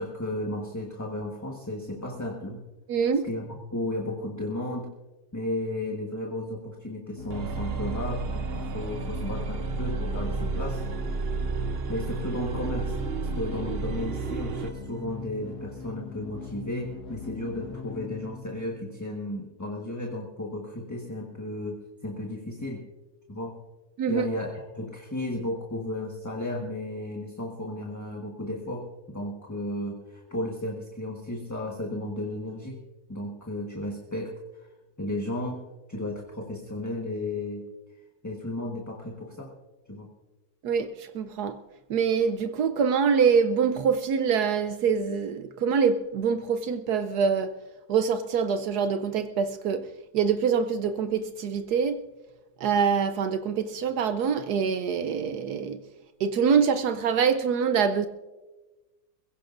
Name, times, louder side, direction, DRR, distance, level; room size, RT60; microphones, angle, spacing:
voice 1, 0.0-2.6 3.2-4.9 5.3-10.8 11.9-22.8 23.3-23.6 24.1-32.8 33.1-34.7 35.0-35.6 35.9-37.6 38.2-39.5 39.9-40.1, left 1 dB, 10° left, 1.3 m, -34 dB
voice 2, 2.9-3.3 24.0-24.2 40.6-41.6 41.9-47.5 47.9-49.9 50.1-52.0 52.6-55.8 56.2-58.1, right 6 dB, 75° right, 1.2 m, -25 dB
sound 1, 7.2-19.1, left 6 dB, 75° left, 2.1 m, -41 dB
sound 2, 7.3-14.8, right 4 dB, 45° right, 0.9 m, -31 dB
22.0 x 16.5 x 2.6 m
omnidirectional pair, 1.7 m